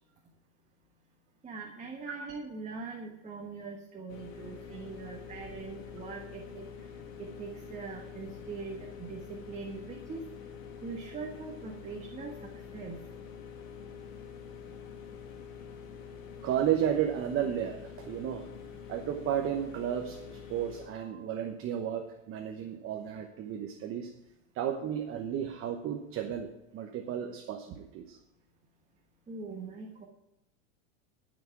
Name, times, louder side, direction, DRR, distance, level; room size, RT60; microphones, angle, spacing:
voice 1, 1.4-6.7 7.2-10.2 10.8-13.0 29.3-30.1, right 4 dB, 20° right, 0 dB, 1.4 m, -42 dB
sound 1, 4.1-20.9, left 7 dB, 90° left, 2.3 m, -46 dB
voice 2, 16.4-18.5 18.9-24.1 24.5-28.2, right 9 dB, 35° right, 5 dB, 1.0 m, -33 dB
18.0 x 6.2 x 4.7 m, 0.91 s
supercardioid pair, 130°, 38 cm